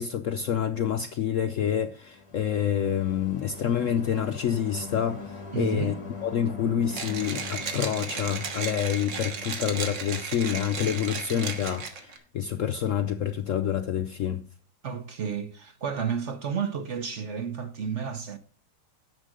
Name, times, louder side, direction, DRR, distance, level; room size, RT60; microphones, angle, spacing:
voice 1, 0.0-5.9 6.2-14.4, left 9 dB, 70° left, 0.8 m, -28 dB
sound 1, 1.8-10.5, left 4 dB, 20° left, 1.6 m, -42 dB
voice 2, 5.5-6.0 14.8-18.4, right 7 dB, 50° right, 1.0 m, -31 dB
Mechanisms, 6.9-12.2, right 5 dB, 90° right, 2.1 m, -35 dB
10.0 x 7.4 x 6.3 m
omnidirectional pair, 1.9 m